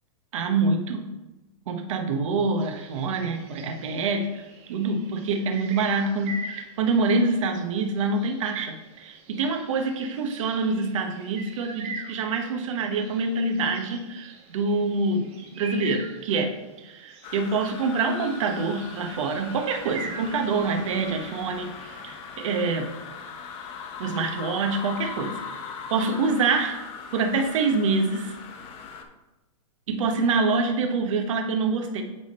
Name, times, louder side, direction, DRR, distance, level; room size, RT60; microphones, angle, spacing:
voice 1, 0.3-1.1 1.7-22.9 24.0-25.4 25.9-26.8 27.1-28.4 29.9-32.0, right 3 dB, 65° right, 4 dB, 1.0 m, -26 dB
sound 1, 2.6-21.5, right 4 dB, 35° right, 1.0 m, -44 dB
sound 2, 17.2-29.0, left 5 dB, 35° left, 0.8 m, -40 dB
8.4 x 3.7 x 4.1 m, 1.0 s
hypercardioid pair, 135°, 18 cm